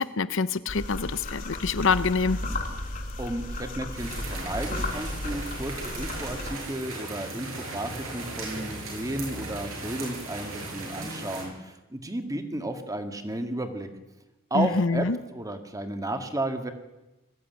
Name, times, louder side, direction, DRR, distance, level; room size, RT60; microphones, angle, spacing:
voice 1, 0.0-2.4 14.5-15.2, left 4 dB, 65° left, 14 dB, 0.8 m, -25 dB
sound 1, 0.7-6.5, left 1 dB, 45° left, 2.8 m, -34 dB
voice 2, 3.2-13.9 14.5-16.7, right 1 dB, 15° right, 7 dB, 1.9 m, -33 dB
sound 2, 3.9-11.4, right 2 dB, 85° right, 7.8 m, -37 dB
20.5 x 14.0 x 9.4 m, 1.0 s
head